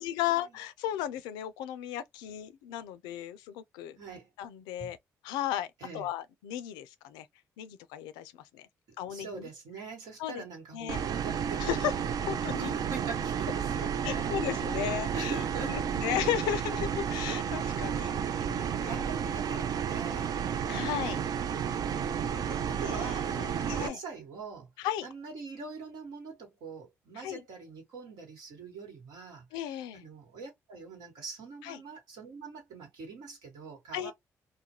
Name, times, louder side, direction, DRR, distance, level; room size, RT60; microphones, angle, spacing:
voice 1, 0.0-4.0 4.4-5.0 5.2-5.7 5.9-7.3 7.6-8.7 9.0-9.4 10.2-10.4 10.7-11.0 11.6-11.9 12.3-12.7 14.0-19.0 20.7-21.2 22.3-24.0 24.8-25.1 27.2-27.4 29.5-30.0 31.6-31.8 33.9-34.1, left 11 dB, 85° left, 0.4 m, -35 dB
voice 2, 4.0-4.3 4.8-4.9 5.8-6.1 9.1-12.0 12.4-15.9 18.6-20.3 21.0-24.7 25.0-29.5 29.9-34.1, right 5 dB, 80° right, 1.2 m, -44 dB
sound 1, 10.9-23.9, right 8 dB, 60° right, 0.4 m, -32 dB
2.4 x 2.2 x 2.8 m
supercardioid pair, 55°, 7 cm